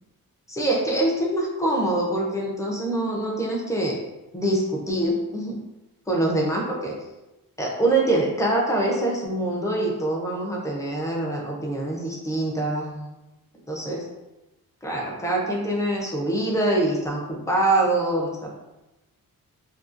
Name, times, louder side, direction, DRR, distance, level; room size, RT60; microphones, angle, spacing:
voice 1, 0.5-4.0 4.3-5.6 6.1-6.9 7.6-13.1 13.7-14.0 14.8-17.2 17.5-18.5, right 1 dB, 10° left, -2 dB, 0.4 m, -24 dB
2.7 x 2.6 x 2.4 m, 1.0 s
wide cardioid pair, 170°, 36 cm